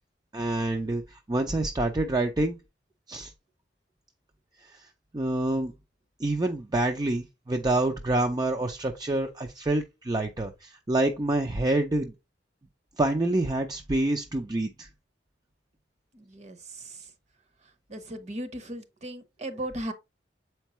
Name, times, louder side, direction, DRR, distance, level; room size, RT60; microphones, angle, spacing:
voice 1, 0.3-2.6 3.1-3.3 4.7-4.9 5.1-5.7 6.2-12.1 13.0-14.9, right 2 dB, 25° right, 0.5 m, -27 dB
voice 2, 16.1-17.0 17.9-19.9, right 1 dB, 40° right, 0.9 m, -37 dB
7.4 x 4.5 x 3.0 m
head